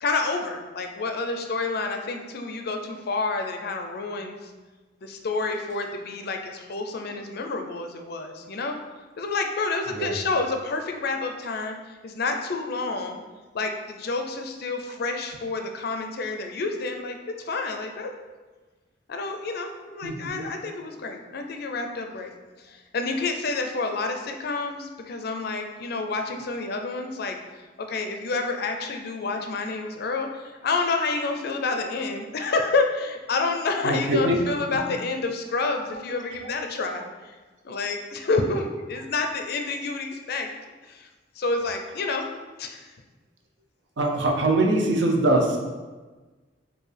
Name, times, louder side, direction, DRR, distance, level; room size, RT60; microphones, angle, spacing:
voice 1, 0.0-4.5 5.0-8.8 9.2-13.2 13.5-18.1 19.1-22.3 22.6-27.4 27.9-37.3 37.6-40.5 40.9-41.1 41.4-42.3 42.6-42.9, left 3 dB, 60° left, 4 dB, 0.4 m, -29 dB
voice 2, 9.9-10.2 20.0-20.4 33.8-34.4 35.9-36.0 44.0-45.6, right 2 dB, 80° right, 1 dB, 0.6 m, -23 dB
4.5 x 2.6 x 3.3 m, 1.3 s
head